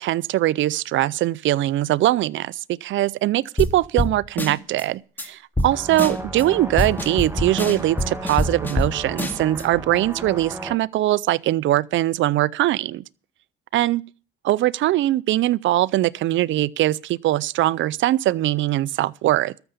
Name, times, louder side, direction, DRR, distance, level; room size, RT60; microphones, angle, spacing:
voice 1, 0.0-13.0 13.7-14.0 14.4-19.5, right 15 dB, 75° right, 0.5 m, -21 dB
sound 1, 3.6-3.7 4.0-4.1 4.4-4.8 5.2-5.3 5.6-5.7 6.0-6.4 6.8-8.9 9.2-9.6, left 1 dB, 10° left, 2.3 m, -24 dB
sound 2, 5.7-10.7, right 1 dB, 10° right, 2.6 m, -34 dB
13.0 x 6.9 x 8.2 m
cardioid pair, 90°, 20 cm